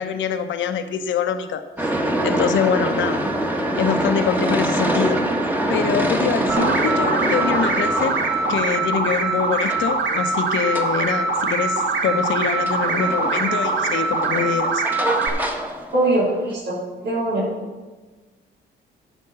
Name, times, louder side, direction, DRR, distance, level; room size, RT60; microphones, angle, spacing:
voice 1, 0.0-2.0 2.2-3.2 3.8-5.2 5.7-8.1 8.5-14.8, left 7 dB, 70° left, 8 dB, 0.9 m, -24 dB
sound 1, 1.8-16.5, right 1 dB, 10° right, 1.3 m, -25 dB
sound 2, 6.5-15.3, right 3 dB, 65° right, 1.5 m, -23 dB
voice 2, 15.9-17.4, right 1 dB, 85° right, -10 dB, 3.5 m, -22 dB
11.0 x 5.3 x 6.8 m, 1.3 s
cardioid pair, 90°, 20 cm